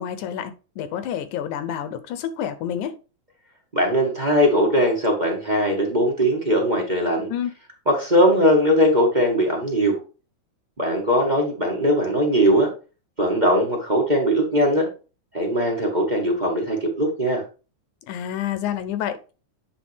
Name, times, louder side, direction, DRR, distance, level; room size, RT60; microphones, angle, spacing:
voice 1, 0.0-3.0 7.3-7.5 18.1-19.3, left 9 dB, 80° left, 2.1 m, -29 dB
voice 2, 3.7-7.3 7.8-10.0 10.8-12.7 13.2-14.9 15.3-17.4, equal, 20° right, 1.2 m, -20 dB
8.7 x 5.6 x 3.4 m
omnidirectional pair, 3.5 m